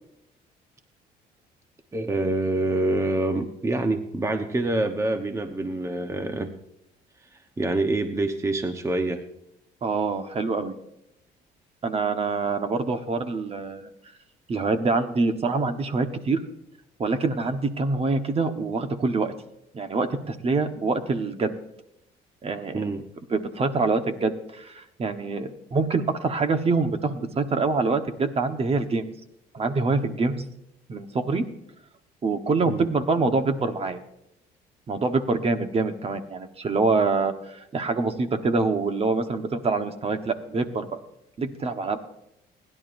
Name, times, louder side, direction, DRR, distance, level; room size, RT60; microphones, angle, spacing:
voice 1, 1.9-6.6 7.6-9.2 22.7-23.0 32.7-32.9, right 2 dB, 15° right, 7 dB, 1.0 m, -26 dB
voice 2, 9.8-10.7 11.8-13.9 14.5-16.4 17.0-19.3 19.7-21.5 22.4-22.9 23.3-29.1 29.5-30.5 30.9-31.4 32.2-34.0 34.9-41.0 41.4-42.1, right 3 dB, 35° right, 8 dB, 1.2 m, -25 dB
29.5 x 11.0 x 2.6 m, 0.82 s
cardioid pair, 110°, 17 cm